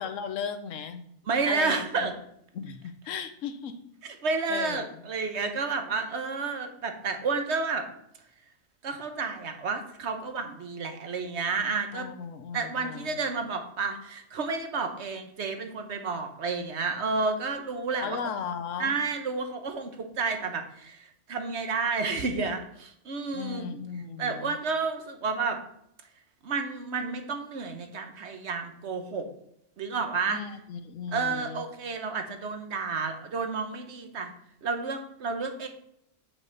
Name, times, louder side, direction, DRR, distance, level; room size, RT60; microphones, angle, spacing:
voice 1, 0.0-1.1 1.4-2.1 2.5-3.8 4.5-5.0 11.9-13.2 18.0-19.0 23.3-24.6 30.3-31.7, left 7 dB, 80° left, 10 dB, 1.1 m, -36 dB
voice 2, 1.3-2.1 4.2-7.8 8.8-12.1 12.5-18.2 18.8-23.8 24.2-25.6 26.4-29.3 29.8-30.4 31.1-34.3 34.6-35.7, right 4 dB, 65° right, 6 dB, 1.2 m, -31 dB
7.6 x 5.9 x 4.0 m, 0.74 s
omnidirectional pair, 1.3 m